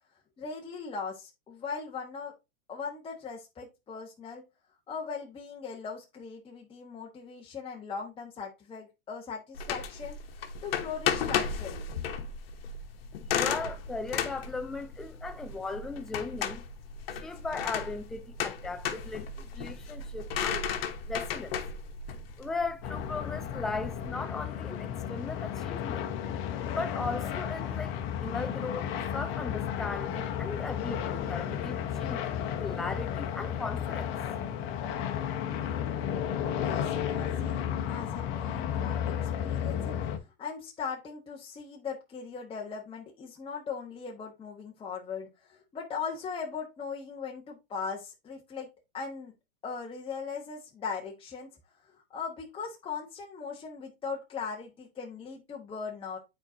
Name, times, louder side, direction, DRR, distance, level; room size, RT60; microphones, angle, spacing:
voice 1, 0.4-2.3 2.7-4.4 4.9-10.2 10.6-11.9 36.5-39.9 40.4-49.3 49.6-51.5 51.9-56.2, left 5 dB, 20° left, 1.2 m, -39 dB
sound 1, 9.6-24.1, left 7 dB, 75° left, 1.2 m, -34 dB
voice 2, 13.3-16.6 17.1-20.7 21.1-21.6 22.4-26.1 26.7-28.8 29.1-34.1, left 3 dB, ahead, 0.3 m, -37 dB
sound 2, 22.8-40.2, left 9 dB, 40° left, 1.1 m, -33 dB
8.8 x 4.4 x 2.6 m
hypercardioid pair, 125°, 29 cm